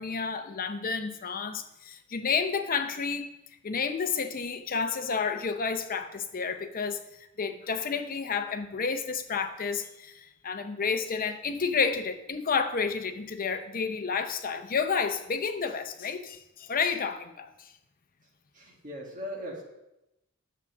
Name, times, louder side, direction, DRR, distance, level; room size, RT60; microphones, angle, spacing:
voice 1, 0.0-3.3 3.6-17.7, left 5 dB, 40° left, 8 dB, 0.7 m, -30 dB
voice 2, 18.5-19.6, equal, 40° right, -1 dB, 1.9 m, -39 dB
7.3 x 7.2 x 5.4 m, 0.91 s
head